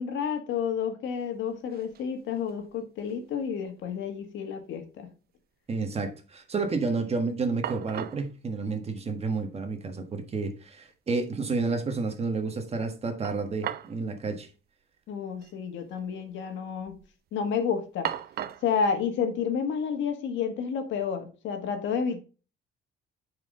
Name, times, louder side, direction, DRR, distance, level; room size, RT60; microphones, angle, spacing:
voice 1, 0.0-5.1 15.1-17.0 17.3-18.1 18.6-22.2, left 6 dB, 75° left, 1.8 m, -30 dB
sound 1, 1.2-1.3 1.5-2.1 2.5-3.4 3.6-3.7 7.1-7.2 7.6-8.3 9.4-9.5 9.9-10.0 13.2-14.0 14.3-14.4 15.3-15.5 15.8-16.3 16.8-17.1 18.0-18.7, right 11 dB, 55° right, 0.6 m, -37 dB
voice 2, 5.7-14.5, right 4 dB, 30° right, 1.5 m, -30 dB
8.9 x 4.9 x 3.8 m
cardioid pair, 125°, 19 cm